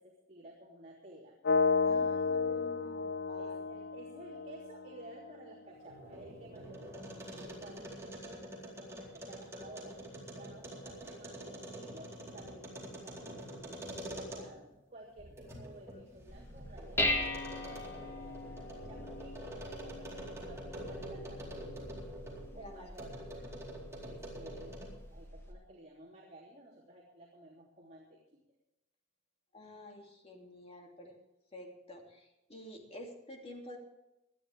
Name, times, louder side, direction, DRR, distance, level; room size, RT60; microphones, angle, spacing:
voice 1, 0.0-1.4 3.4-7.2 7.6-10.0 10.3-17.2 17.5-21.9 22.5-23.5 24.0-28.4, right 1 dB, 40° right, -5 dB, 3.1 m, -54 dB
sound 1, 1.4-5.4, left 4 dB, 55° left, 0.5 m, -32 dB
voice 2, 1.9-3.6 22.5-22.9 29.5-31.1 31.5-33.8, left 1 dB, 30° left, 1 dB, 2.9 m, -50 dB
sound 2, 5.7-14.7 15.2-22.5 22.9-25.1, right 1 dB, 15° right, 4.2 m, -46 dB
Dishes pots and pans, 16.3-25.5, left 1 dB, 15° left, 2.0 m, -40 dB
20.0 x 12.5 x 3.6 m, 0.92 s
head